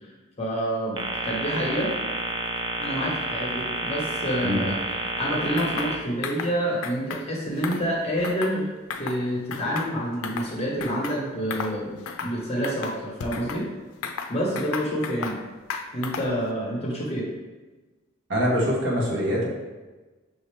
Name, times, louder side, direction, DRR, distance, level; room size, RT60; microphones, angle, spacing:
voice 1, 0.4-1.9 2.7-8.7 9.0-13.6 14.3-15.4 15.9-17.3, equal, 30° left, -5 dB, 1.0 m, -28 dB
sound 1, 1.0-5.9, right 2 dB, 25° right, 0.4 m, -30 dB
sound 2, 5.6-5.9 6.2-6.5 6.8-7.2 7.6-8.6 8.9-9.2 9.5-10.5 10.8-11.2 11.5-11.8 12.1-12.4 12.6-13.6 14.0-15.4 15.7-16.4, left 5 dB, 85° left, 0.4 m, -34 dB
voice 2, 18.3-19.5, equal, 60° right, -5 dB, 1.1 m, -24 dB
5.8 x 2.7 x 3.2 m, 1.2 s
head